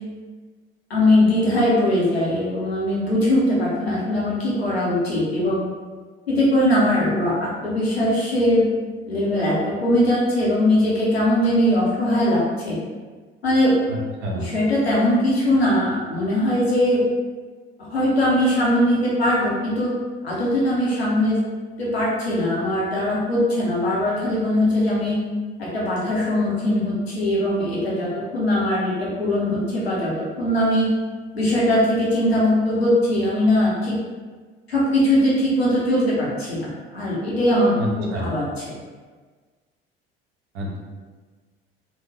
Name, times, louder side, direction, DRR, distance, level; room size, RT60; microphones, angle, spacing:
voice 1, 0.9-5.6 6.3-8.7 9.1-12.7 13.4-13.7 14.3-17.0 17.9-19.9 20.2-21.4 21.8-25.2 25.6-30.9 31.3-34.0 34.7-37.7 38.0-38.4, left 1 dB, 85° left, -6 dB, 0.9 m, -20 dB
voice 2, 13.9-14.5 37.7-38.4 40.5-40.8, left 1 dB, 65° right, -1 dB, 0.8 m, -28 dB
3.4 x 2.2 x 3.3 m, 1.4 s
figure-of-eight pair, 55°, 30 cm